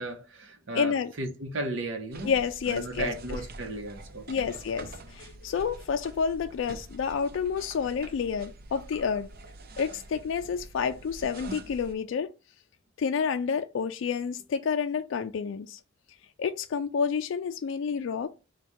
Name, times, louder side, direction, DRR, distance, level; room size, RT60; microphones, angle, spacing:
voice 1, 0.0-2.3 2.7-4.5, right 2 dB, 75° right, 0.8 m, -35 dB
voice 2, 0.7-1.1 2.2-3.4 4.3-9.3 9.8-12.3 13.0-15.8 16.4-18.3, left 6 dB, 70° left, 0.3 m, -29 dB
sound 1, 2.1-11.9, right 2 dB, 50° right, 0.6 m, -45 dB
4.7 x 2.3 x 4.3 m
head